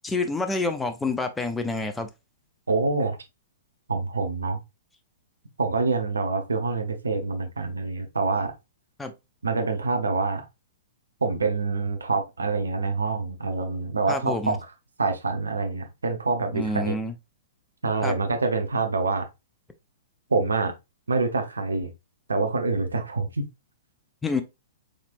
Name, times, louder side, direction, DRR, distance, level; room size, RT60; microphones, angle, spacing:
voice 1, 0.0-2.1 9.0-9.1 14.1-14.5 16.5-17.1 18.0-18.2 24.2-24.4, left 3 dB, 10° left, 0.5 m, -28 dB
voice 2, 2.7-3.2 3.9-4.6 5.6-8.5 9.4-10.4 11.2-14.6 15.0-16.9 17.8-19.3 20.3-20.7 21.1-21.9 22.3-23.5, right 3 dB, 70° right, 0.9 m, -26 dB
5.0 x 3.3 x 2.5 m
figure-of-eight pair, 110°, 0 cm